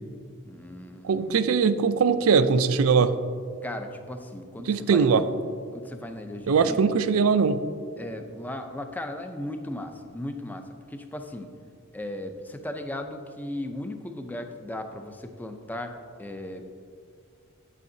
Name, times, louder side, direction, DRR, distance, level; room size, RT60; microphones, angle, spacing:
voice 1, 0.5-1.6 3.6-5.1 5.7-6.9 8.0-11.5 11.9-16.8, left 1 dB, 10° left, 6 dB, 0.4 m, -37 dB
voice 2, 1.0-3.1 4.7-5.2 6.5-7.6, right 5 dB, 65° right, 12 dB, 0.4 m, -21 dB
8.4 x 8.2 x 2.7 m, 2.2 s
head